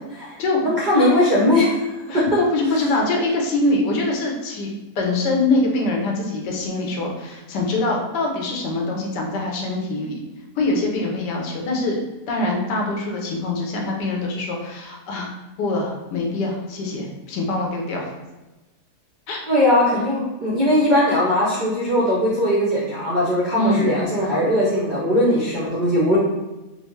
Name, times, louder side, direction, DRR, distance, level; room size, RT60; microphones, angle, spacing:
voice 1, 0.6-1.9 2.1-2.2 19.5-26.2, left 1 dB, 65° right, -6 dB, 0.4 m, -19 dB
voice 2, 2.1-4.7 5.0-10.2 10.6-12.0 12.3-15.3 15.6-18.1 19.3-19.4 23.5-23.9, left 2 dB, 85° left, 0 dB, 1.3 m, -23 dB
4.2 x 2.0 x 3.1 m, 1.1 s
omnidirectional pair, 1.8 m